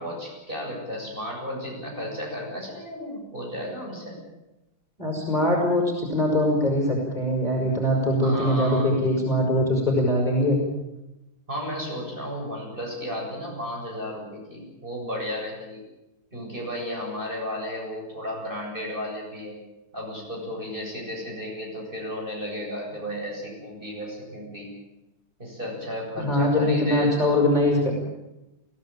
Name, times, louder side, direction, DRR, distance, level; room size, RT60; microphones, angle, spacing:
voice 1, 0.0-4.2 8.2-8.9 11.5-15.8 16.3-19.6 19.9-24.7 25.4-27.5, equal, 20° right, -2 dB, 8.1 m, -33 dB
voice 2, 5.0-10.6 26.2-28.0, left 1 dB, 20° left, -1 dB, 6.1 m, -22 dB
23.0 x 17.0 x 9.1 m, 0.96 s
omnidirectional pair, 2.3 m